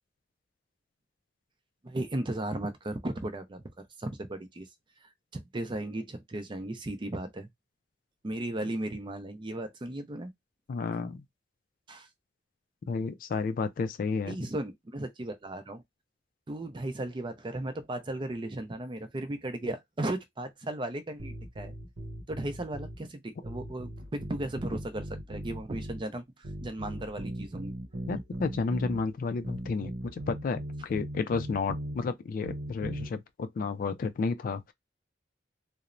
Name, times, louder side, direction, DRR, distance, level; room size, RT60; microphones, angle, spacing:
voice 1, 1.8-4.7 5.0-7.5 8.2-10.3 11.9-12.1 14.3-15.8 16.5-21.7 22.3-26.2 26.6-27.8, right 1 dB, 25° right, 0.5 m, -36 dB
voice 2, 10.7-11.2 12.9-14.5 28.1-34.7, left 4 dB, 50° left, 0.3 m, -32 dB
sound 1, 21.2-23.0 23.4-26.1 26.4-29.0 29.4-32.0 32.4-33.1, right 1 dB, 90° right, 0.7 m, -39 dB
2.9 x 2.0 x 2.5 m
head